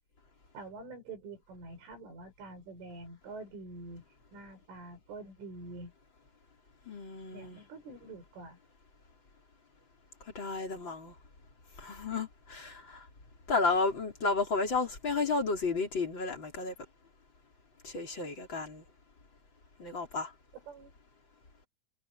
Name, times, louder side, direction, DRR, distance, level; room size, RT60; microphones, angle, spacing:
voice 1, 0.5-4.0 4.3-5.9 7.3-8.6 20.5-20.9, right 3 dB, 85° right, 9.7 m, -46 dB
voice 2, 6.9-7.6 10.3-11.1 11.8-13.0 13.5-16.7 17.8-18.8 19.8-20.3, left 4 dB, 25° left, 4.3 m, -32 dB
omnidirectional pair, 5.5 m